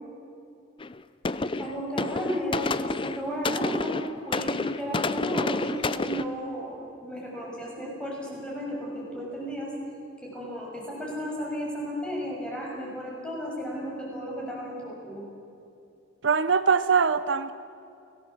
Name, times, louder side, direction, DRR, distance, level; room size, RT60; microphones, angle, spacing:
sound 1, 0.8-1.0 1.2-6.2, left 3 dB, 25° left, 0.5 m, -29 dB
voice 1, 1.6-2.7 3.0-4.0 4.3-9.7 10.2-15.2, equal, 5° left, -4 dB, 6.6 m, -34 dB
voice 2, 16.2-17.5, right 5 dB, 65° right, 12 dB, 0.7 m, -22 dB
29.0 x 17.5 x 7.4 m, 2.6 s
head